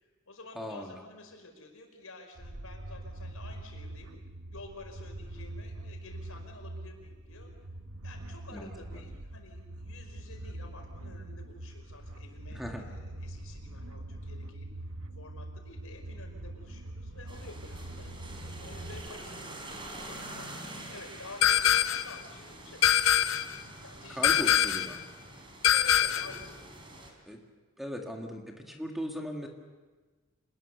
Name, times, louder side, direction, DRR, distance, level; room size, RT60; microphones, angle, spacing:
voice 1, 0.0-4.1 4.5-7.5 8.0-14.7 15.1-18.2 18.6-20.6 20.9-24.5 25.7-26.5, left 2 dB, 90° left, 3 dB, 5.3 m, -50 dB
voice 2, 0.6-1.0 8.5-8.7 12.5-12.8 24.1-25.0 27.3-27.4 27.8-29.5, equal, ahead, 1 dB, 2.1 m, -38 dB
sound 1, 2.4-19.1, right 1 dB, 80° right, 1.2 m, -43 dB
sound 2, 17.3-27.1, right 1 dB, 25° right, 3.9 m, -46 dB
sound 3, 21.4-22.1 22.8-23.6 24.2-25.0 25.6-26.4, left 10 dB, 70° left, 0.7 m, -24 dB
26.5 x 20.5 x 6.8 m, 1.3 s
head